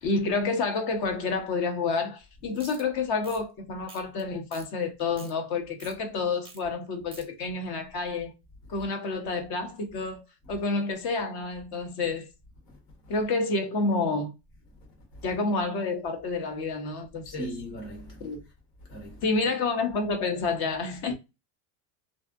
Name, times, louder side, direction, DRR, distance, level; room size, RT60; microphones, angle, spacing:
voice 1, 0.0-8.3 8.7-12.3 13.1-14.3 15.2-17.5 18.2-18.4 19.2-21.1, left 3 dB, 50° left, 0.7 m, -29 dB
sound 1, 2.6-2.8 3.2-3.4 3.9-4.2 4.5-4.7 5.0-5.3 5.8-5.9 6.4-6.6 6.9-7.2, right 4 dB, 10° right, 0.5 m, -47 dB
voice 2, 17.2-18.4 18.9-19.2 21.1-21.2, right 1 dB, 85° left, 1.4 m, -39 dB
2.6 x 2.0 x 2.3 m
supercardioid pair, 110°, 48 cm